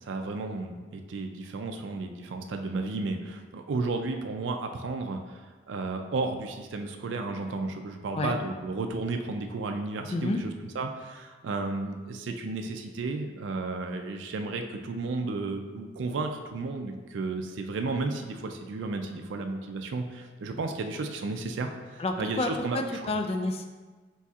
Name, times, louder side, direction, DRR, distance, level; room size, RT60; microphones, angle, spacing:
voice 1, 0.0-5.4 5.7-10.5 10.8-23.0, right 3 dB, 85° right, 5 dB, 0.4 m, -33 dB
voice 2, 22.0-23.7, left 2 dB, 35° left, 4 dB, 0.3 m, -29 dB
5.2 x 4.1 x 2.4 m, 1.3 s
head